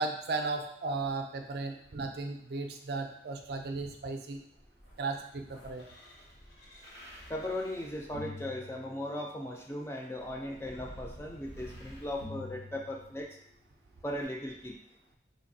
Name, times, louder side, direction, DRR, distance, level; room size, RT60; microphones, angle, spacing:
voice 1, 0.0-4.4 5.0-5.9, right 3 dB, 60° right, 4 dB, 0.4 m, -35 dB
sound 1, 4.5-9.4 10.1-13.5 14.2-14.3, left 1 dB, 75° left, 0.8 m, -49 dB
voice 2, 7.3-13.4 14.0-14.7, left 1 dB, 15° left, 0 dB, 0.3 m, -38 dB
4.0 x 2.6 x 2.6 m, 0.71 s
head